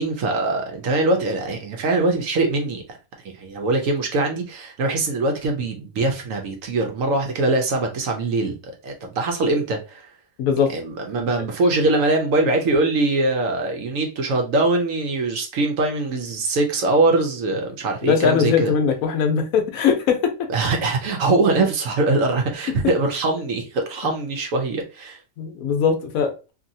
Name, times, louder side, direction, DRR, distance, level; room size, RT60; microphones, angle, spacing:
voice 1, 0.0-2.8 3.2-10.1 10.7-18.7 20.5-25.2, right 2 dB, 70° right, 1.0 m, -22 dB
voice 2, 10.4-10.7 18.0-20.5 25.4-26.3, left 6 dB, 70° left, 1.0 m, -20 dB
2.8 x 2.6 x 2.6 m
omnidirectional pair, 1.6 m